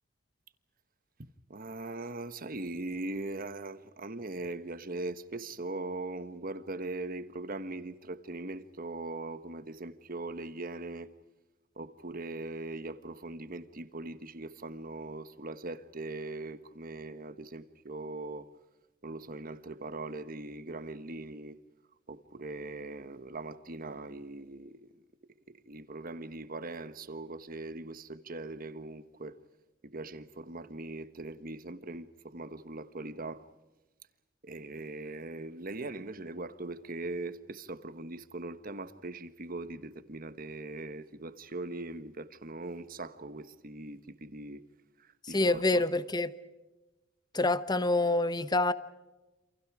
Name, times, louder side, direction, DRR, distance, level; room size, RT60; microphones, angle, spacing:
voice 1, 1.2-11.1 11.8-18.5 19.0-21.6 22.1-24.9 25.5-29.4 29.8-33.4 34.4-44.6 45.3-45.8, right 2 dB, 45° right, 1.4 m, -40 dB
voice 2, 45.2-46.3 47.3-48.7, left 2 dB, 20° left, 1.0 m, -27 dB
29.0 x 27.5 x 4.9 m
head